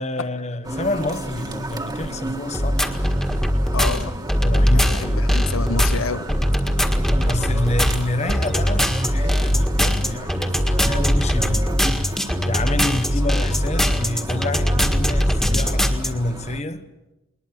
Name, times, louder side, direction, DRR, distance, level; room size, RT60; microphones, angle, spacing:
voice 1, 0.0-3.0 4.4-5.7 7.2-11.7 12.5-16.8, left 2 dB, 35° left, 1.2 m, -28 dB
sound 1, 0.6-16.6, right 1 dB, 20° right, 1.6 m, -34 dB
sound 2, 2.5-16.1, equal, 5° left, 1.7 m, -20 dB
voice 2, 3.7-4.1 4.7-6.4, left 4 dB, 85° left, 0.9 m, -28 dB
21.5 x 20.5 x 8.0 m
head